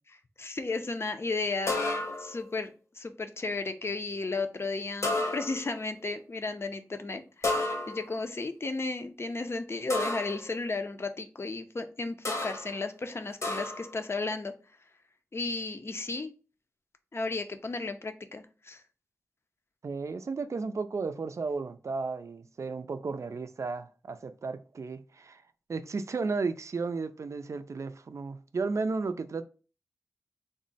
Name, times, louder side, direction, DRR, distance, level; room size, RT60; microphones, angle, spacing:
voice 1, 0.4-1.8 2.2-14.5 15.3-16.3 17.1-18.8, left 3 dB, 50° left, 0.5 m, -34 dB
sound 1, 1.7-2.4 5.0-5.8 7.4-8.2 9.9-10.5 12.3-12.7 13.4-13.9, left 2 dB, 65° left, 1.0 m, -31 dB
voice 2, 19.8-25.4 25.7-29.5, right 4 dB, 65° right, 0.4 m, -34 dB
3.6 x 2.1 x 3.9 m
cardioid pair, 45°, 6 cm